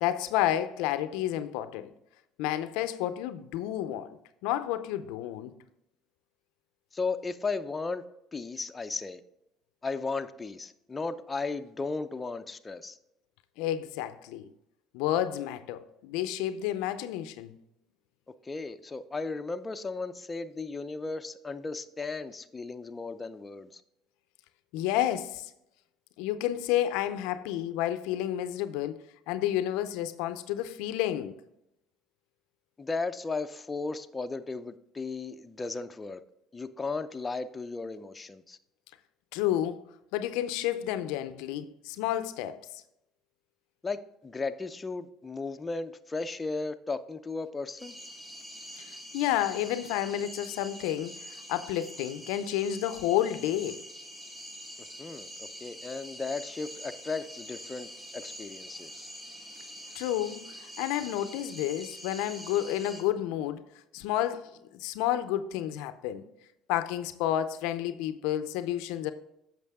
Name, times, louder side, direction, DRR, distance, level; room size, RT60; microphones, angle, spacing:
voice 1, 0.0-1.9 2.4-4.2 4.4-5.5 13.6-14.5 14.9-17.5 24.7-25.5 26.2-31.4 39.3-39.8 40.1-42.6 48.8-53.8 59.9-63.6 63.9-66.2 66.7-69.1, left 12 dB, 80° left, 0.5 m, -30 dB
voice 2, 6.9-8.0 8.3-9.2 9.8-13.0 18.4-23.8 32.8-36.2 36.5-38.6 43.8-47.9 55.0-59.0, left 3 dB, 25° left, 0.6 m, -35 dB
sound 1, 47.8-63.0, equal, 10° right, 1.9 m, -45 dB
8.3 x 6.0 x 3.6 m
supercardioid pair, 80°, 0 cm